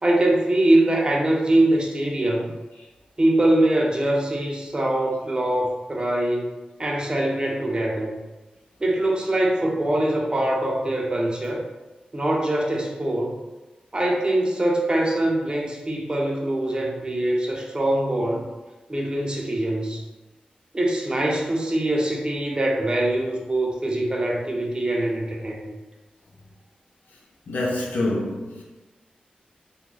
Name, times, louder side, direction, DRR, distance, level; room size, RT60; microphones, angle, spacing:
voice 1, 0.0-2.5 3.2-6.5 6.8-8.2 8.8-11.6 12.1-13.4 13.9-18.4 18.9-20.0 20.7-25.7, right 1 dB, 30° right, -1 dB, 0.6 m, -23 dB
voice 2, 27.5-28.6, left 1 dB, 85° left, -4 dB, 0.6 m, -26 dB
2.4 x 2.2 x 3.2 m, 1.1 s
cardioid pair, 50°, 3 cm